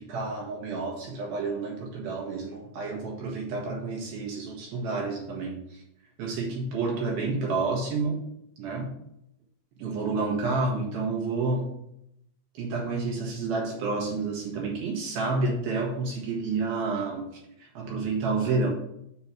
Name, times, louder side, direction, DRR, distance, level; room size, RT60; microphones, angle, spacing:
voice 1, 0.0-5.8 6.2-8.2 8.6-9.0 9.8-11.7 12.5-18.7, right 3 dB, 65° right, -2 dB, 2.9 m, -30 dB
6.8 x 4.4 x 5.9 m, 0.77 s
omnidirectional pair, 5.0 m